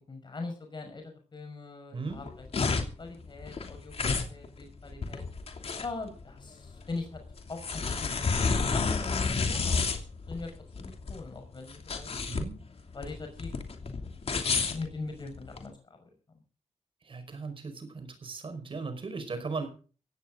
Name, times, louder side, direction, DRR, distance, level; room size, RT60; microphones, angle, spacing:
voice 1, 0.0-5.2 5.7-7.2 7.5-10.5 10.8-12.1 12.9-13.5 13.9-16.1, left 3 dB, 40° left, 4 dB, 5.7 m, -42 dB
sound 1, 2.1-15.6, left 4 dB, 60° left, 2.9 m, -31 dB
voice 2, 12.3-12.6 17.0-19.7, right 4 dB, 50° right, 8 dB, 5.2 m, -37 dB
17.5 x 16.5 x 3.9 m, 0.38 s
wide cardioid pair, 145°, 11 cm